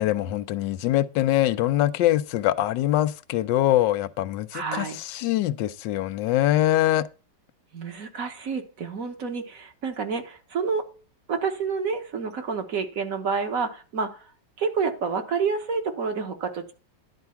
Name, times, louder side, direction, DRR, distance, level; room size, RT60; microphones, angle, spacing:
voice 1, 0.0-7.1, left 14 dB, 90° left, 1.3 m, -23 dB
voice 2, 4.5-5.0 7.7-10.9 11.3-14.3 14.6-16.7, right 5 dB, 55° right, 1.4 m, -29 dB
10.5 x 4.5 x 5.6 m
omnidirectional pair, 1.9 m